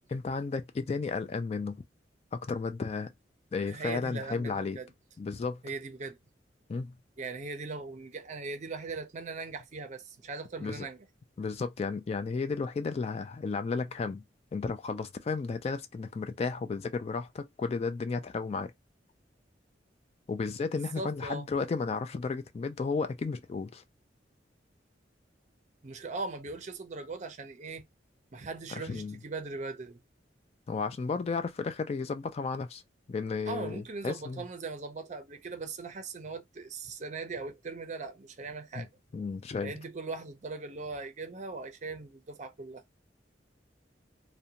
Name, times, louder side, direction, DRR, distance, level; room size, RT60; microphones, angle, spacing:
voice 1, 0.1-1.8 2.3-3.1 3.5-4.8 5.2-5.6 6.7-6.9 10.6-10.9 11.4-14.2 14.5-18.7 20.3-23.8 28.8-29.2 30.7-32.8 33.1-34.4 38.8-38.9 39.1-39.7, left 4 dB, 35° left, 0.3 m, -33 dB
voice 2, 3.7-4.9 5.6-6.2 7.2-11.0 20.8-21.5 25.8-27.8 28.3-30.0 33.5-38.9 39.6-42.8, right 3 dB, 40° right, 0.5 m, -39 dB
2.5 x 2.1 x 2.8 m
head